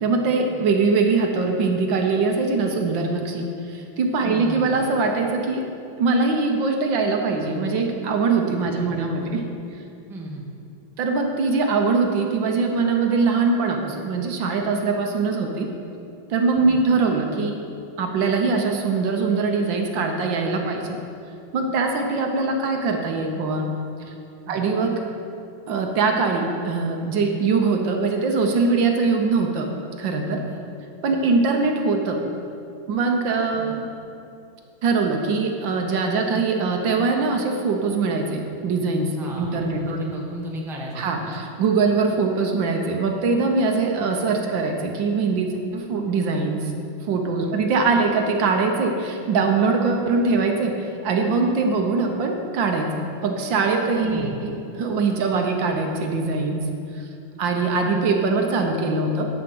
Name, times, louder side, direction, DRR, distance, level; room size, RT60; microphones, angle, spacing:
voice 1, 0.0-5.7 6.0-9.4 11.0-15.7 16.3-17.6 18.0-21.0 21.5-23.7 24.5-25.0 25.7-29.7 30.0-30.4 31.0-32.2 32.9-33.8 34.8-40.0 40.9-46.7 47.1-50.7 51.0-56.6 56.9-57.0 57.4-59.3, right 4 dB, 70° right, 3 dB, 1.6 m, -22 dB
voice 2, 4.2-4.8 8.7-9.0 10.1-10.5 16.6-16.8 24.5-24.6 30.4-30.6 31.1-31.2 33.6-33.9 39.2-41.3 47.4-47.6 54.1-54.4, equal, ahead, -2 dB, 0.9 m, -35 dB
11.0 x 5.1 x 7.8 m, 2.6 s
omnidirectional pair, 2.2 m